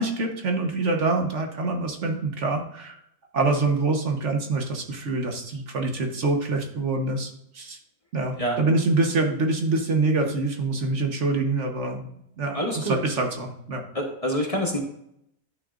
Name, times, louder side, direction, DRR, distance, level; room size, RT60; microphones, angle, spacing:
voice 1, 0.0-3.0 3.3-7.8 8.1-13.8, right 3 dB, 55° right, 3 dB, 1.4 m, -25 dB
voice 2, 12.5-13.0 13.9-14.8, equal, 25° left, 1 dB, 1.1 m, -26 dB
11.5 x 6.4 x 2.5 m, 0.77 s
omnidirectional pair, 1.5 m